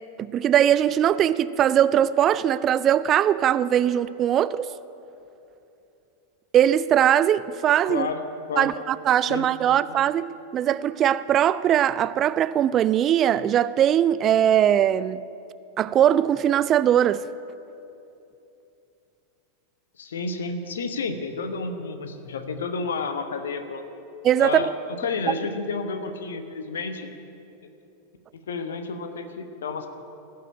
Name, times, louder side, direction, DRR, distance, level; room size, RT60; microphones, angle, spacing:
voice 1, 0.0-4.7 6.5-8.1 8.6-10.3 10.5-15.3 15.8-17.3 24.2-24.7 25.3-25.4, right 10 dB, 30° right, 0.3 m, -20 dB
voice 2, 7.8-8.7 9.3-9.8 20.0-23.8 24.4-27.1 28.5-29.9, left 4 dB, 65° left, 1.1 m, -31 dB
16.5 x 5.8 x 9.9 m
figure-of-eight pair, 90°, 0 cm